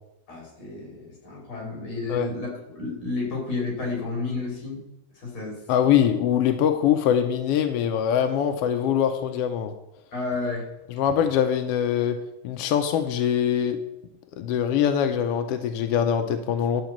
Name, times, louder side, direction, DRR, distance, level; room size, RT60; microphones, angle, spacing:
voice 1, 0.3-4.8 5.2-5.7 10.1-10.6, left 3 dB, 45° left, -1 dB, 3.7 m, -31 dB
voice 2, 5.7-9.7 10.9-12.2 12.4-13.8 14.4-16.8, left 9 dB, 75° left, 6 dB, 1.4 m, -23 dB
10.5 x 4.9 x 7.2 m, 0.89 s
omnidirectional pair, 3.3 m